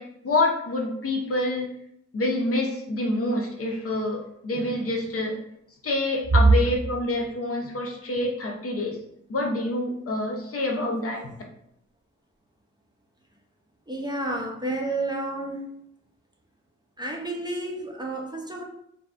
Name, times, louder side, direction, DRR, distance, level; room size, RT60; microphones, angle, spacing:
voice 1, 0.0-1.7 2.1-5.4 5.8-9.0 9.3-11.3, left 2 dB, 50° left, 1 dB, 0.6 m, -27 dB
voice 2, 13.9-15.6 17.0-18.6, right 2 dB, 15° right, 0 dB, 0.5 m, -31 dB
2.6 x 2.3 x 2.4 m, 0.74 s
cardioid pair, 60°, 29 cm